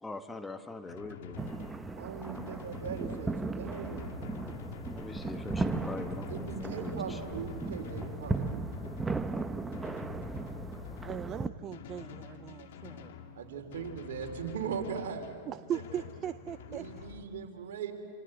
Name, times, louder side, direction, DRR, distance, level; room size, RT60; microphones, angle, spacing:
voice 1, 0.0-1.4 4.9-8.0, left 3 dB, 10° left, 8 dB, 1.3 m, -43 dB
Drum, 0.9-17.2, left 7 dB, 70° left, 2.3 m, -46 dB
sound 1, 1.4-11.5, right 3 dB, 10° right, 1.0 m, -36 dB
voice 2, 2.0-4.2 6.3-8.7 13.4-15.3 16.7-17.9, right 7 dB, 70° right, 4 dB, 3.6 m, -39 dB
voice 3, 11.0-13.1 15.5-17.1, right 10 dB, 30° right, 12 dB, 0.6 m, -39 dB
27.5 x 27.0 x 8.0 m, 2.4 s
hypercardioid pair, 110°, 0 cm